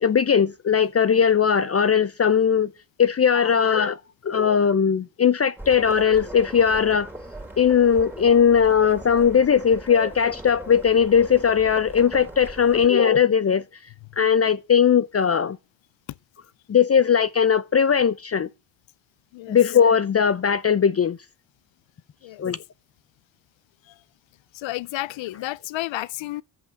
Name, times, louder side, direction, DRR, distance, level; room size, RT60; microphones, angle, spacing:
voice 1, 0.0-2.7 3.0-4.0 4.2-7.1 7.6-13.6 14.2-15.6 16.7-18.5 19.5-21.2 22.4-22.6, left 7 dB, 35° left, 0.6 m, -19 dB
sound 1, 5.6-12.9, right 1 dB, 5° right, 2.8 m, -39 dB
voice 2, 24.5-26.4, left 17 dB, 85° left, 0.6 m, -32 dB
11.5 x 7.9 x 7.5 m
cardioid pair, 95°, 45 cm